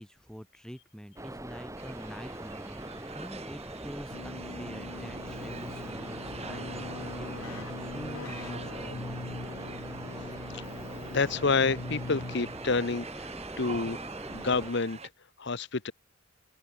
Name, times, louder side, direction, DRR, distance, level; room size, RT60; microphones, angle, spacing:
voice 1, 0.0-9.3, equal, 5° left, 6.1 m, -46 dB
sound 1, 1.2-14.7, right 1 dB, 15° right, 2.2 m, -41 dB
sound 2, 1.8-15.1, right 5 dB, 30° right, 4.1 m, -47 dB
Keyboard (musical), 4.1-12.8, left 2 dB, 85° left, 1.2 m, -42 dB
voice 2, 11.1-13.3 13.6-14.0 14.3-15.0 15.4-15.9, left 4 dB, 55° left, 1.0 m, -28 dB
open air
head